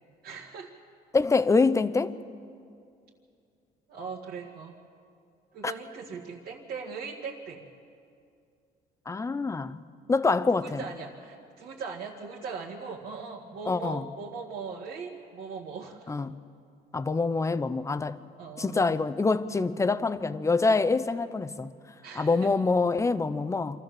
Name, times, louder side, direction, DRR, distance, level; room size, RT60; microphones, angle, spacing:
voice 1, 0.2-0.7 3.9-4.7 5.5-7.6 10.5-16.1 18.4-19.0 22.0-22.5, right 5 dB, 65° right, -3 dB, 1.9 m, -39 dB
voice 2, 1.1-2.1 5.6-5.7 9.1-9.8 10.1-10.8 13.7-14.0 16.1-16.4 16.9-18.2 18.6-21.7 22.2-23.8, left 3 dB, 15° left, 14 dB, 0.7 m, -25 dB
26.5 x 14.0 x 7.7 m, 2.4 s
cardioid pair, 110°, 17 cm